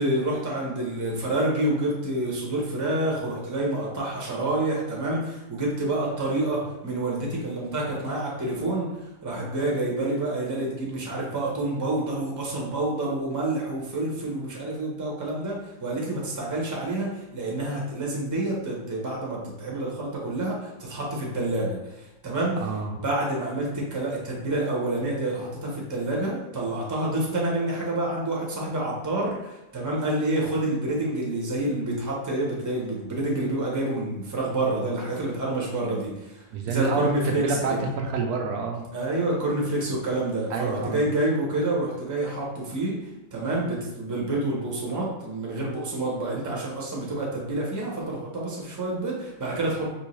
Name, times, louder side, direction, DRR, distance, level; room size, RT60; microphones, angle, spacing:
voice 1, 0.0-8.9 9.2-22.7 22.9-37.8 38.9-43.0 43.3-49.9, right 2 dB, 15° right, -3 dB, 0.7 m, -28 dB
voice 2, 22.6-22.9 36.5-38.8 40.5-41.0, right 4 dB, 85° right, 2 dB, 1.2 m, -27 dB
4.5 x 3.1 x 3.1 m, 0.96 s
omnidirectional pair, 1.6 m